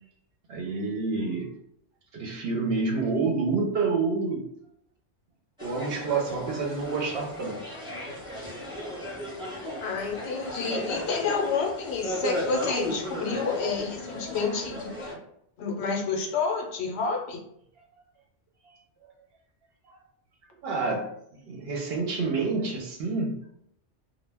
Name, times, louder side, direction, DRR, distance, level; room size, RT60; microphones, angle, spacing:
voice 1, 0.5-1.5 2.1-4.5 5.6-7.7 19.9-20.0 20.6-23.4, right 4 dB, 65° right, 0 dB, 0.7 m, -28 dB
sound 1, 5.6-15.1, equal, 5° right, 0.7 m, -35 dB
voice 2, 9.8-15.2 15.6-17.4, left 5 dB, 70° left, 0 dB, 0.8 m, -29 dB
2.1 x 2.1 x 3.2 m, 0.72 s
omnidirectional pair, 1.2 m